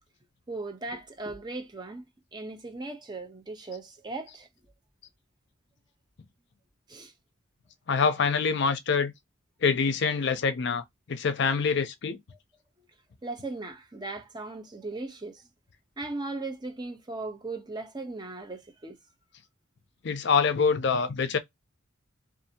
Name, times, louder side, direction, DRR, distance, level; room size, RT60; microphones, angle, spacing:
voice 1, 0.5-4.5 6.9-7.1 13.2-15.5 16.0-19.0, right 2 dB, 20° right, 0.6 m, -38 dB
voice 2, 7.9-9.1 9.6-12.2 20.0-21.4, left 5 dB, 60° left, 0.5 m, -25 dB
2.7 x 2.4 x 2.6 m
head